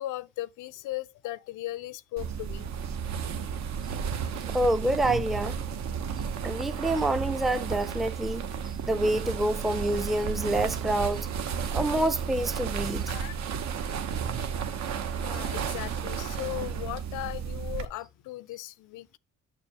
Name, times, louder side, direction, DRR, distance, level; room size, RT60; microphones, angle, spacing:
voice 1, 0.0-2.7 13.1-13.4 15.2-19.2, left 16 dB, 85° left, 0.5 m, -37 dB
sound 1, 2.2-17.8, right 7 dB, 65° right, 1.0 m, -33 dB
voice 2, 4.5-5.5 6.4-11.3 11.7-13.0, right 1 dB, ahead, 0.4 m, -27 dB
6.8 x 6.6 x 2.9 m
cardioid pair, 90°, 30 cm